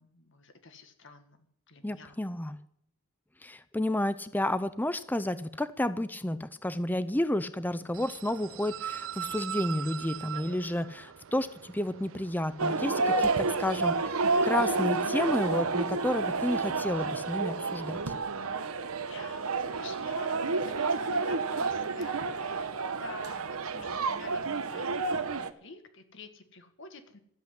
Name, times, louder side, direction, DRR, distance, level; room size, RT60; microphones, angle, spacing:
voice 1, 0.0-1.4 1.7-2.2 19.1-27.2, left 3 dB, 55° left, 8 dB, 1.8 m, -49 dB
voice 2, 1.8-2.6 3.4-18.1, left 1 dB, 10° left, 13 dB, 0.5 m, -31 dB
sound 1, 7.9-17.6, right 9 dB, 60° right, 0.5 m, -43 dB
sound 2, 12.6-25.5, right 3 dB, 75° right, 1.0 m, -30 dB
13.0 x 8.1 x 9.6 m, 0.71 s
head